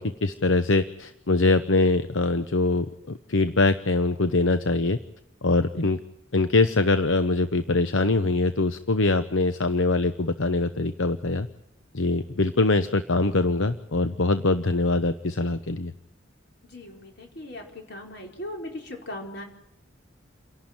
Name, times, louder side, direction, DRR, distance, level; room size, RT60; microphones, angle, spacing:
voice 1, 0.0-5.0 5.4-6.0 6.3-11.5 11.9-15.9, left 3 dB, 75° left, 11 dB, 0.9 m, -23 dB
voice 2, 16.7-19.4, left 1 dB, 55° left, 2 dB, 4.8 m, -38 dB
29.0 x 11.5 x 9.0 m, 0.82 s
head